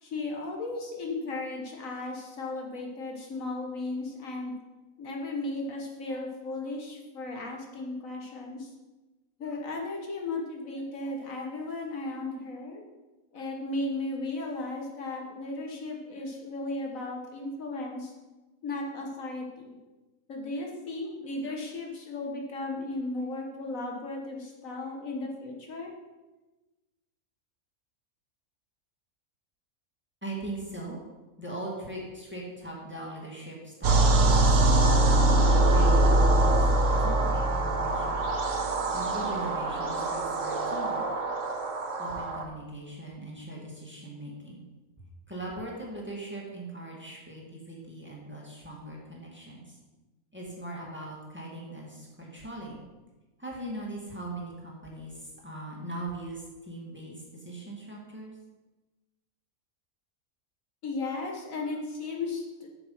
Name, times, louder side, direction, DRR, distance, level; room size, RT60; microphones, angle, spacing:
voice 1, 0.0-4.5 5.0-8.7 9.4-12.8 13.3-18.1 18.6-19.8 20.3-25.9 60.8-62.7, left 2 dB, 70° left, 0 dB, 1.7 m, -35 dB
voice 2, 30.2-31.0 31.4-35.0 35.7-36.6 36.9-38.2 38.7-41.0 42.0-44.6 45.3-49.8 50.3-52.8 53.4-58.4, right 1 dB, 10° right, -3 dB, 2.0 m, -40 dB
sound 1, 33.8-42.4, right 2 dB, 60° right, 1.3 m, -23 dB
8.3 x 7.1 x 5.6 m, 1.2 s
omnidirectional pair, 1.5 m